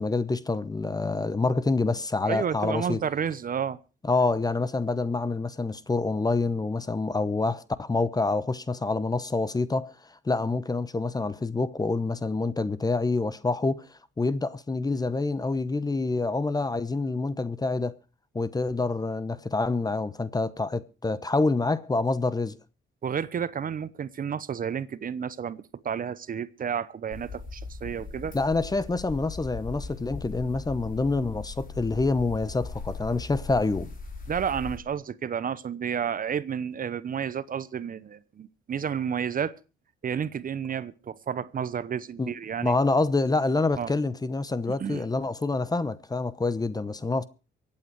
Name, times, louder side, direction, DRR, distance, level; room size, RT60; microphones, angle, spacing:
voice 1, 0.0-3.0 4.1-17.9 18.3-22.6 28.3-33.9 42.2-42.3 42.6-47.2, left 3 dB, 20° left, 0.9 m, -27 dB
voice 2, 2.2-3.8 23.0-28.4 34.3-39.5 40.0-42.8 43.8-43.9 44.8-45.0, right 7 dB, 45° right, 0.8 m, -31 dB
sound 1, 27.1-34.8, left 4 dB, 45° left, 3.9 m, -39 dB
24.0 x 8.8 x 4.6 m
cardioid pair, 90°, 20 cm